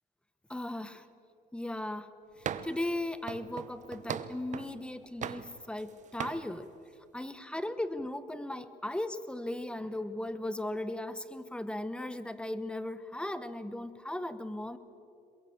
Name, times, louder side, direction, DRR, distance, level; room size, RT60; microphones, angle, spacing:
voice 1, 0.5-1.1 1.5-6.7 7.1-14.8, left 1 dB, 5° left, 13 dB, 1.1 m, -37 dB
sound 1, 2.4-2.9 3.3-4.8 5.2-5.9 6.2-6.4, right 8 dB, 45° right, 0.9 m, -39 dB
22.0 x 22.0 x 7.3 m, 2.7 s
cardioid pair, 110°, 17 cm